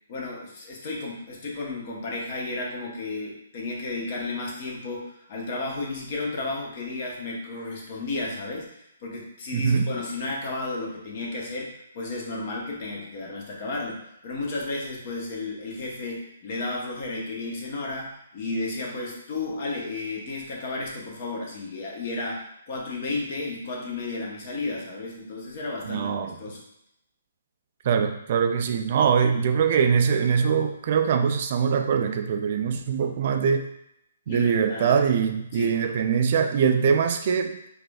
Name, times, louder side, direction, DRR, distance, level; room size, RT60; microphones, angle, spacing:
voice 1, 0.1-26.6 34.3-35.0 35.5-35.8, left 2 dB, 45° left, -2 dB, 1.0 m, -33 dB
voice 2, 9.5-9.9 25.9-26.3 27.8-33.7 34.3-37.6, right 6 dB, 45° right, 7 dB, 0.3 m, -23 dB
4.7 x 2.5 x 2.4 m, 0.79 s
figure-of-eight pair, 130°, 0 cm